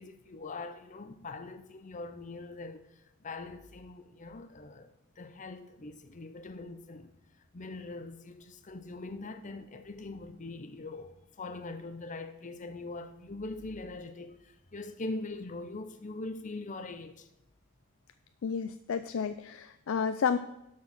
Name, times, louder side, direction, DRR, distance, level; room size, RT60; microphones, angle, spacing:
voice 1, 0.0-4.9 5.2-17.3, left 2 dB, 40° left, 0.7 m, -42 dB
voice 2, 18.4-20.4, left 6 dB, 75° left, 0.4 m, -31 dB
12.0 x 4.7 x 5.8 m
head